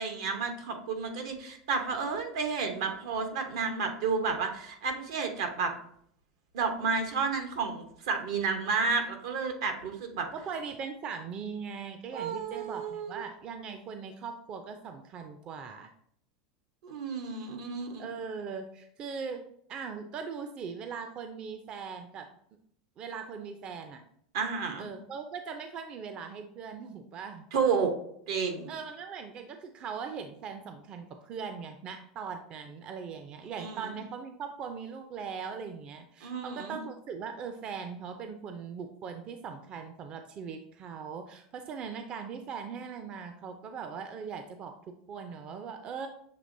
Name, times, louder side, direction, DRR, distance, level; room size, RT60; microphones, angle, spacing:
voice 1, 0.0-5.7 6.5-10.3 12.1-13.2 16.8-18.1 24.3-24.9 27.5-27.9 28.3-28.7 33.6-33.8 36.2-36.8, right 5 dB, 80° right, 5 dB, 0.8 m, -31 dB
voice 2, 10.3-15.9 18.0-19.4 19.7-22.3 23.0-24.0 24.8-27.4 28.7-46.1, right 6 dB, 40° right, 7 dB, 0.4 m, -40 dB
6.7 x 2.9 x 2.6 m, 0.68 s
supercardioid pair, 110°, 3 cm